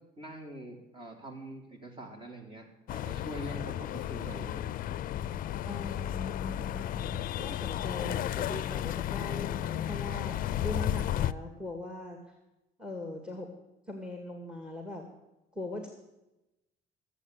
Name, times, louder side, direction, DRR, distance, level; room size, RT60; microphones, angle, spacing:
voice 1, 0.2-4.7, right 1 dB, 30° right, 3 dB, 3.5 m, -44 dB
sound 1, 2.9-11.3, left 12 dB, 55° left, 0.5 m, -33 dB
voice 2, 5.6-12.2 12.8-13.5 13.9-15.1 15.5-15.9, left 1 dB, 5° right, 4 dB, 2.0 m, -41 dB
14.5 x 8.2 x 8.1 m, 0.95 s
cardioid pair, 110°, 17 cm